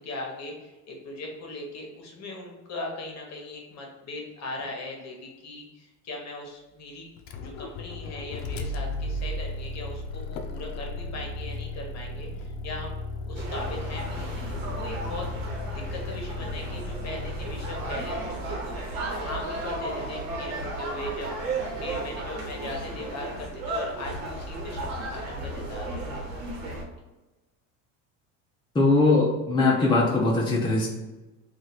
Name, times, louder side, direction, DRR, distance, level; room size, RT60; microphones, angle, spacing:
voice 1, 0.0-7.1 7.4-13.0 13.2-15.6 15.9-26.1, left 2 dB, 40° left, 0 dB, 1.1 m, -39 dB
Motor vehicle (road), 7.2-18.4, left 2 dB, 60° left, 0.6 m, -35 dB
sound 1, 13.4-26.8, right 2 dB, 80° right, 1.1 m, -34 dB
voice 2, 28.7-30.9, left 3 dB, 10° left, -5 dB, 0.7 m, -21 dB
3.0 x 2.5 x 4.1 m, 1.1 s
supercardioid pair, 110°, 40 cm